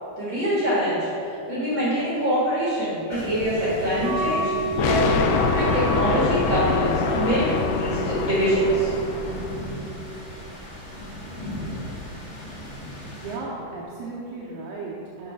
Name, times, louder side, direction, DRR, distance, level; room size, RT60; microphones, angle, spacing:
voice 1, 0.2-5.1 5.5-8.9, right 1 dB, 55° right, -9 dB, 1.3 m, -24 dB
ohio storm, 3.1-13.4, equal, 45° left, 1.3 m, -36 dB
Wind instrument woodwind instrument, 4.0-9.8, right 2 dB, 75° left, 2.9 m, -31 dB
sound 1, 4.8-9.7, left 6 dB, 90° left, 2.6 m, -25 dB
voice 2, 13.1-15.3, right 3 dB, 75° right, -6 dB, 2.1 m, -35 dB
6.3 x 4.7 x 5.4 m, 2.9 s
omnidirectional pair, 4.5 m